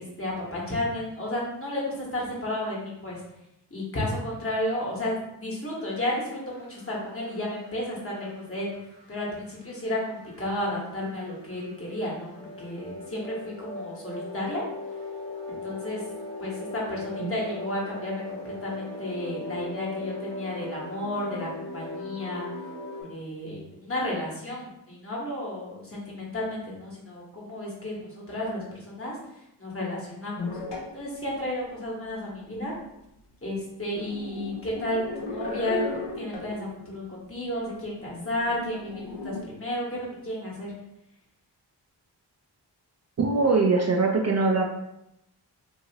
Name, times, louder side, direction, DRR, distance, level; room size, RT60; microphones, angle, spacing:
voice 1, 0.0-3.2 3.7-8.7 9.1-14.6 15.5-16.0 16.4-22.5 23.0-29.1 29.6-30.5 30.9-32.7 33.4-40.7, left 1 dB, 30° left, -4 dB, 1.3 m, -32 dB
sound 1, 5.8-23.0, left 2 dB, 90° right, 1.1 m, -39 dB
sound 2, 30.4-31.0 31.6-31.7 32.5-32.6 33.0-33.1 33.9-36.6 37.1-37.2 37.5-37.8 38.1-39.4, left 2 dB, 80° left, 0.8 m, -35 dB
voice 2, 43.2-44.6, right 3 dB, 40° right, 0 dB, 0.5 m, -22 dB
2.8 x 2.7 x 2.8 m, 0.83 s
cardioid pair, 60°, 42 cm